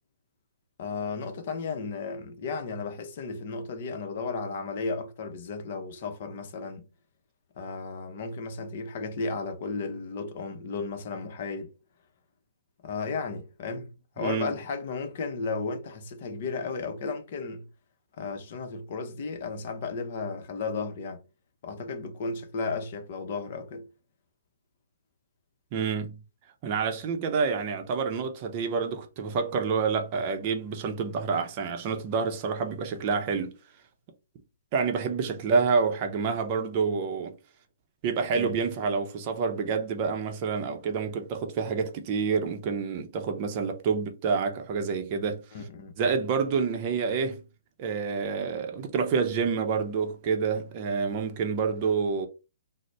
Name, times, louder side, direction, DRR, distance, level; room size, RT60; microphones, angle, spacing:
voice 1, 0.8-6.9 7.6-11.7 12.8-17.7 18.2-21.3 21.6-23.9 38.3-38.6 45.5-46.0, left 4 dB, 50° left, 0.7 m, -34 dB
voice 2, 14.2-14.5 25.7-26.2 26.6-33.5 34.7-37.4 38.0-45.4 46.0-47.4 47.8-52.3, right 5 dB, 35° right, 0.6 m, -28 dB
3.9 x 2.0 x 3.2 m
hypercardioid pair, 150°, 0 cm